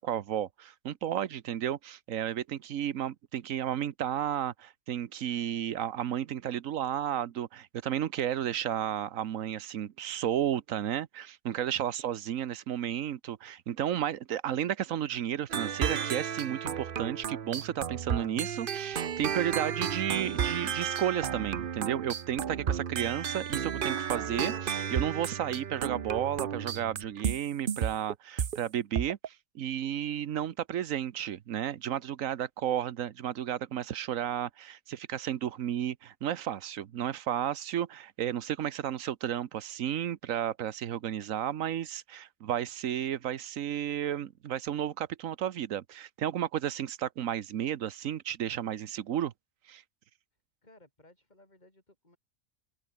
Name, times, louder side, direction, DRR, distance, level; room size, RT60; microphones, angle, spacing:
voice 1, 0.0-49.3 49.7-49.8, right 10 dB, 85° right, 1.3 m, -33 dB
sound 1, 15.5-28.6 29.0-29.3, right 8 dB, 45° right, 0.9 m, -33 dB
voice 2, 50.6-52.2, left 1 dB, 35° left, 5.5 m, -60 dB
omnidirectional pair, 1.3 m